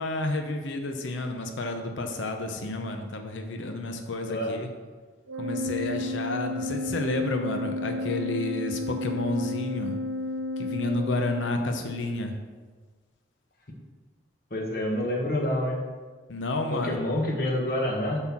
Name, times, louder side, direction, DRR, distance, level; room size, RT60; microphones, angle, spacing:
voice 1, 0.0-4.7 5.4-10.0 10.6-12.3 16.3-17.0, left 2 dB, 85° left, 5 dB, 0.7 m, -30 dB
Organ, 5.3-11.8, left 1 dB, 90° right, 0.6 m, -32 dB
voice 2, 14.5-15.8 16.8-18.2, left 1 dB, 50° left, 0 dB, 1.3 m, -27 dB
7.8 x 3.9 x 6.0 m, 1.4 s
head